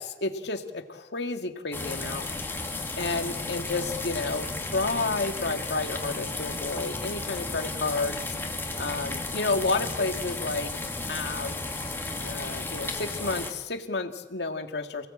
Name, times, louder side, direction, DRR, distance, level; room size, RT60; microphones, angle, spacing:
voice 1, 0.0-2.6 3.0-8.4 8.8-10.7 11.1-11.6 12.2-15.1, left 3 dB, 70° left, 6 dB, 2.2 m, -31 dB
sound 1, 1.7-13.5, left 2 dB, 15° left, 2.8 m, -34 dB
28.5 x 18.0 x 8.7 m, 1.1 s
head